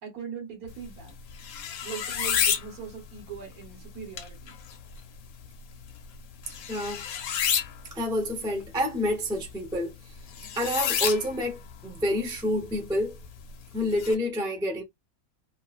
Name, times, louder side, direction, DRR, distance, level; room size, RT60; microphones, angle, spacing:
voice 1, 0.0-1.1 1.8-4.6, right 7 dB, 75° right, 1.6 m, -40 dB
sound 1, 0.7-14.1, left 8 dB, 75° left, 1.0 m, -33 dB
voice 2, 6.7-7.0 7.9-9.9 10.6-13.1 13.7-14.8, left 1 dB, 5° right, 0.5 m, -28 dB
2.9 x 2.4 x 2.3 m
omnidirectional pair, 1.5 m